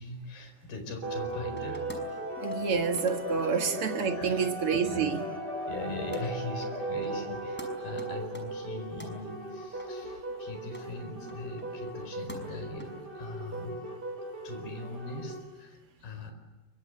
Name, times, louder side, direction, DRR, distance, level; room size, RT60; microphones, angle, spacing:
voice 1, 0.0-1.9 3.3-3.6 4.2-4.5 4.8-5.1 5.7-13.8 14.4-16.3, left 3 dB, 65° left, 7 dB, 6.5 m, -41 dB
sound 1, 1.0-15.4, right 1 dB, 25° right, 5.7 m, -37 dB
sound 2, 1.6-2.0 2.4-2.7 2.9-4.9 5.3-5.8 6.1-6.3 6.7-6.8 7.0-7.3 7.6-7.7 8.0-9.1 9.7-9.9 10.3-10.4 10.7-10.8 11.3-12.0 12.3-12.8, equal, ahead, 5.1 m, -47 dB
voice 2, 2.4-5.2 13.5-13.7, right 6 dB, 50° right, 5 dB, 1.8 m, -29 dB
27.0 x 25.0 x 7.8 m, 1.2 s
omnidirectional pair, 4.7 m